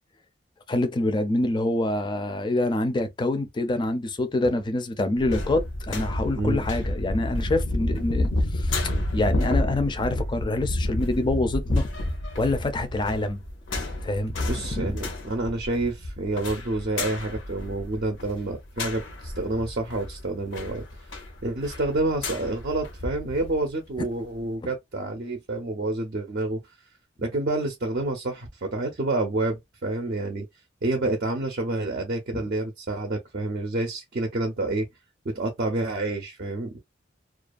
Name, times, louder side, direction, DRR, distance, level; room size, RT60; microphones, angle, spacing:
voice 1, 0.7-11.9 12.4-13.4 14.0-14.3 14.7-14.9 24.6-24.7 32.3-32.4, left 2 dB, 25° left, 0.4 m, -26 dB
sound 1, 5.2-23.6 24.0-24.1, left 1 dB, 80° left, 0.7 m, -30 dB
voice 2, 14.4-20.8 21.4-26.6 27.2-30.5 30.8-34.9 35.2-36.8, right 2 dB, 50° right, 0.5 m, -28 dB
2.4 x 2.2 x 2.4 m
head